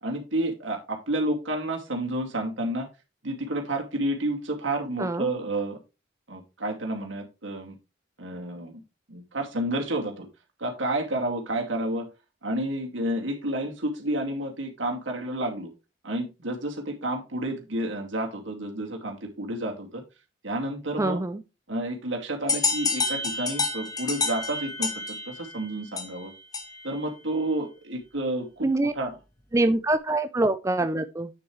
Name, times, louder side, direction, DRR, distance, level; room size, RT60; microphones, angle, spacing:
voice 1, 0.0-2.9 3.2-5.8 6.3-7.8 8.2-8.8 9.1-10.3 10.6-12.1 12.4-15.7 16.0-20.0 20.4-21.2 21.7-24.9 25.3-26.3 26.8-28.7 28.9-29.2, right 1 dB, 85° right, 2.3 m, -30 dB
voice 2, 5.0-5.3 21.0-21.4 28.6-28.9 29.5-31.3, right 2 dB, 15° right, 0.4 m, -24 dB
sound 1, 22.5-27.0, left 4 dB, 20° left, 1.2 m, -29 dB
9.1 x 7.0 x 3.2 m
head